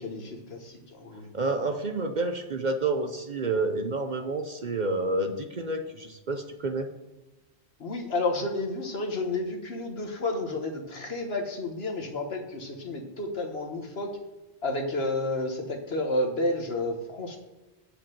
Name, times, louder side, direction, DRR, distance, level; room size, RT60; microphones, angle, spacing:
voice 1, 0.0-1.3 7.8-14.2 14.6-17.4, left 2 dB, 60° left, 3 dB, 1.6 m, -31 dB
voice 2, 1.3-6.9, right 2 dB, 45° right, 6 dB, 0.8 m, -29 dB
8.8 x 5.1 x 7.4 m, 1.1 s
omnidirectional pair, 1.2 m